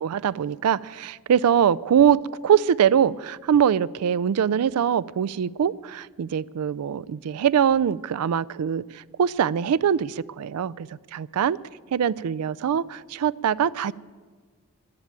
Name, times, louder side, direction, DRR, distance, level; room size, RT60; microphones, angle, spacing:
voice 1, 0.0-11.6 11.9-13.9, right 8 dB, 85° right, 19 dB, 0.4 m, -23 dB
11.0 x 10.5 x 8.9 m, 1.5 s
head